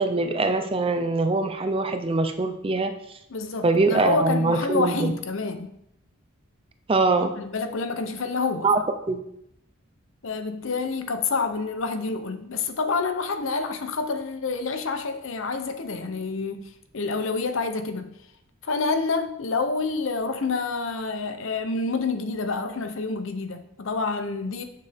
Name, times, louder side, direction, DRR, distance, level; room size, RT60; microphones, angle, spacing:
voice 1, 0.0-2.9 3.6-5.1 6.9-7.3 8.6-8.8 9.1-9.2, right 3 dB, 25° right, 0.5 m, -23 dB
voice 2, 3.3-5.7 7.4-8.7 10.2-18.2 18.6-24.6, left 4 dB, 65° left, 0.7 m, -28 dB
6.8 x 6.8 x 3.5 m
head